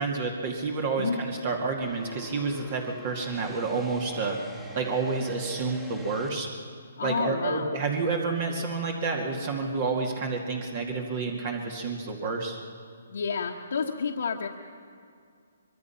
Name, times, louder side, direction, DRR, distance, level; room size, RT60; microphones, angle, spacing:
voice 1, 0.0-4.4 4.7-6.5 7.0-12.6, right 4 dB, 40° right, 2 dB, 2.2 m, -29 dB
sound 1, 1.8-6.3, equal, 10° right, 1.8 m, -45 dB
voice 2, 7.0-7.7 13.1-14.5, left 5 dB, 70° left, -1 dB, 1.4 m, -30 dB
24.0 x 22.0 x 5.9 m, 2.3 s
hypercardioid pair, 155°, 0 cm